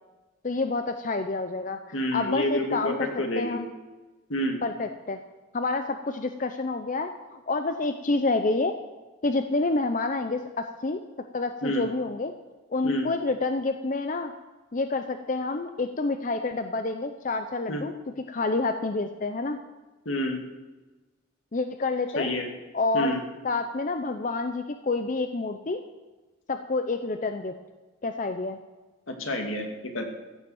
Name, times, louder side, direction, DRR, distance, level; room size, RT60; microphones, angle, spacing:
voice 1, 0.4-3.1 3.4-3.7 4.6-5.2 5.5-8.7 9.2-11.0 11.3-12.3 12.7-14.3 14.7-17.9 18.3-19.6 21.5-22.3 22.7-23.1 23.4-25.8 26.5-27.5 28.0-28.6, left 3 dB, 40° left, 8 dB, 0.6 m, -28 dB
voice 2, 1.9-3.6 4.3-4.6 11.6-11.9 12.8-13.1 17.7-17.8 20.1-20.4 22.2-22.5 22.9-23.2 29.1-30.0, left 1 dB, 80° left, 3 dB, 2.1 m, -28 dB
14.5 x 7.1 x 7.8 m, 1.2 s
head